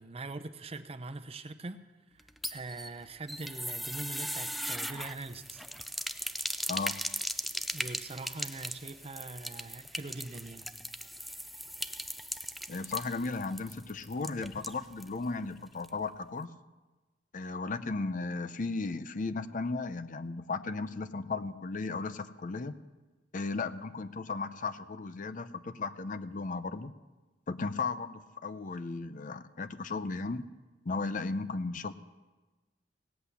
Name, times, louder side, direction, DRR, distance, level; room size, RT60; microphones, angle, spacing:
voice 1, 0.0-1.8 2.5-5.6 7.7-10.7, right 2 dB, 35° right, 9 dB, 0.7 m, -42 dB
sound 1, 2.2-15.2 15.4-15.5 15.8-15.9, equal, ahead, 0.4 m, -38 dB
voice 2, 12.7-16.5 17.3-22.7 23.3-26.9 27.5-30.4 30.9-31.9, left 3 dB, 45° left, 12 dB, 0.6 m, -35 dB
17.5 x 8.1 x 8.3 m, 1.2 s
head